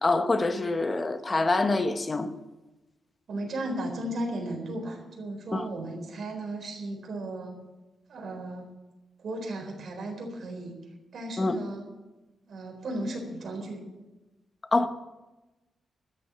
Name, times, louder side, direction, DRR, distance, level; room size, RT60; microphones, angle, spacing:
voice 1, 0.0-2.3 5.5-5.6 11.4-11.6 14.7-14.9, left 2 dB, 25° left, 0.9 m, -25 dB
voice 2, 3.3-7.5 8.1-8.7 9.2-10.8 11.1-11.9 12.5-13.8, right 1 dB, 55° right, 4.2 m, -35 dB
13.0 x 7.8 x 9.8 m
wide cardioid pair, 165°, 0 cm